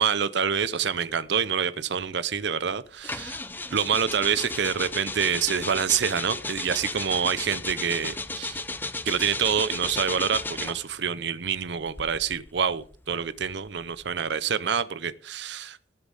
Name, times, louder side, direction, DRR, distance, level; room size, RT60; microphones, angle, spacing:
voice 1, 0.0-3.4 3.7-8.6 9.0-15.8, right 7 dB, 65° right, 16 dB, 0.6 m, -27 dB
sound 1, 3.0-10.9 11.8-14.3, left 3 dB, 10° left, 0.5 m, -34 dB
18.5 x 8.4 x 4.0 m, 0.42 s
head